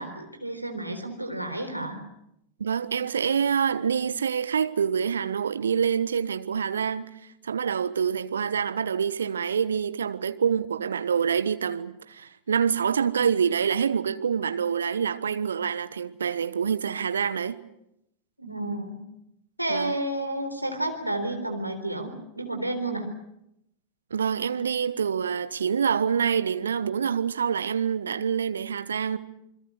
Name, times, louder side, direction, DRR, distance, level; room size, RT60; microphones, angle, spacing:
voice 1, 0.0-2.0 18.4-19.0 19.6-23.1, right 1 dB, 90° right, 4.0 m, -31 dB
voice 2, 2.6-7.1 7.4-17.6 19.7-19.9 24.1-29.2, right 7 dB, 70° right, 1.2 m, -26 dB
28.5 x 22.0 x 6.6 m
figure-of-eight pair, 90°, 0 cm